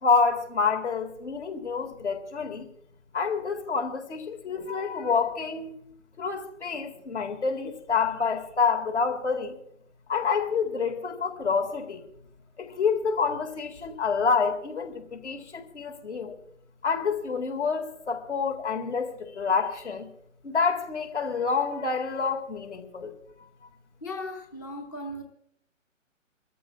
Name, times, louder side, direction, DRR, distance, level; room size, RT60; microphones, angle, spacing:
voice 1, 0.0-2.7 3.1-5.8 6.2-9.6 10.1-12.0 12.6-16.4 16.8-20.1 20.4-23.1, left 5 dB, 60° left, 2.3 m, -28 dB
voice 2, 24.0-25.2, left 1 dB, 15° left, 0.6 m, -37 dB
27.5 x 14.0 x 2.4 m
figure-of-eight pair, 135°, 40 cm